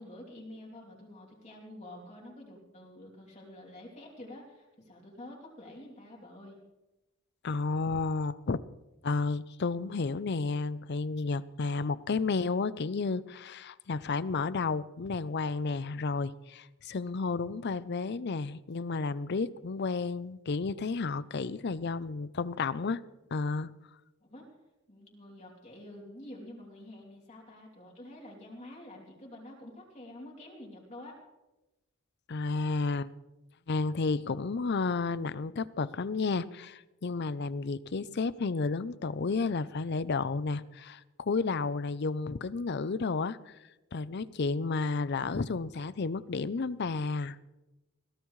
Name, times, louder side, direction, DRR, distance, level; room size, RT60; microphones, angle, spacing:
voice 1, 0.0-6.6 24.2-24.5 24.9-31.1, left 1 dB, 35° left, -3 dB, 2.9 m, -48 dB
voice 2, 7.4-8.6 9.0-23.0 23.3-23.7 32.3-33.1 33.7-43.6 43.9-47.4, left 4 dB, 50° left, 17 dB, 0.5 m, -32 dB
22.0 x 16.0 x 3.2 m, 1.0 s
head